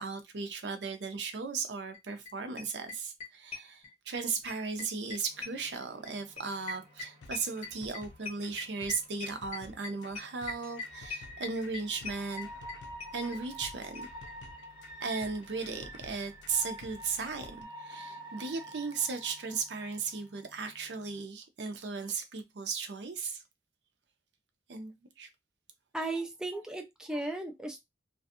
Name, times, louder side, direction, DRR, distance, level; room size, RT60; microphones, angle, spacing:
voice 1, 0.0-12.5 13.1-14.1 15.0-23.4 24.7-25.3, right 4 dB, 75° right, 0.6 m, -36 dB
sound 1, 1.9-2.0 2.3-2.4 2.6-4.2 4.5-13.7 13.9-14.0 14.3-14.4 14.6-14.7, left 4 dB, 35° left, 1.1 m, -41 dB
sound 2, 5.3-21.2, equal, 30° right, 1.0 m, -49 dB
sound 3, 7.2-17.6, left 3 dB, 90° left, 0.4 m, -53 dB
voice 2, 25.9-27.8, right 2 dB, 5° right, 0.4 m, -36 dB
2.5 x 2.3 x 2.6 m
head